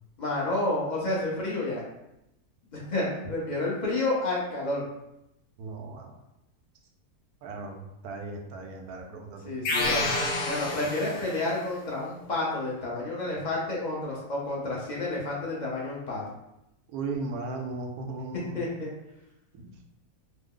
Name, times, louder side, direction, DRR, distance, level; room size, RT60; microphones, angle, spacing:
voice 1, 0.2-1.8 2.7-4.8 9.4-10.1 10.5-16.2 18.5-18.9, left 2 dB, 40° left, -5 dB, 0.7 m, -30 dB
voice 2, 5.6-6.2 7.4-9.5 16.9-18.6 19.5-19.7, right 3 dB, 80° right, 2 dB, 1.1 m, -37 dB
sound 1, 9.6-11.5, left 2 dB, 85° left, 1.1 m, -29 dB
3.1 x 2.0 x 3.7 m, 0.87 s
omnidirectional pair, 1.6 m